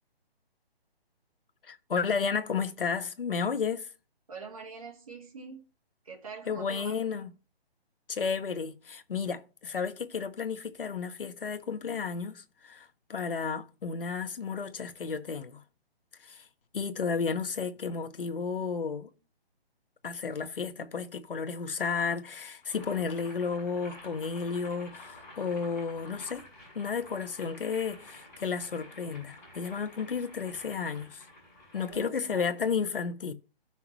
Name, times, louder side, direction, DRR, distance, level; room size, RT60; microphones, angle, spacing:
voice 1, 1.6-3.9 6.5-7.3 8.1-15.6 16.2-16.5 16.7-19.1 20.0-26.4 26.7-31.3 31.7-33.3, left 5 dB, 60° left, 1.2 m, -32 dB
voice 2, 4.3-5.7 6.0-6.9 31.7-32.4, right 5 dB, 35° right, 1.9 m, -44 dB
Boiling, 22.6-32.0, left 1 dB, 15° left, 5.7 m, -50 dB
14.5 x 5.9 x 3.1 m
hypercardioid pair, 180°, 31 cm